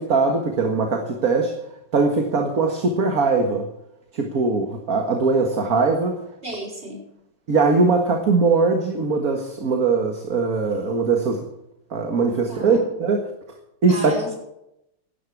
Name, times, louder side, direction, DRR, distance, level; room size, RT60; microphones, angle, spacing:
voice 1, 0.0-1.5 1.9-3.7 4.1-6.2 7.5-11.4 11.9-13.2 13.8-14.0, right 4 dB, 50° right, 3 dB, 2.0 m, -21 dB
voice 2, 6.4-7.0 12.5-12.9 13.9-14.3, equal, 35° right, -2 dB, 4.8 m, -32 dB
17.5 x 12.0 x 4.8 m, 0.83 s
omnidirectional pair, 2.0 m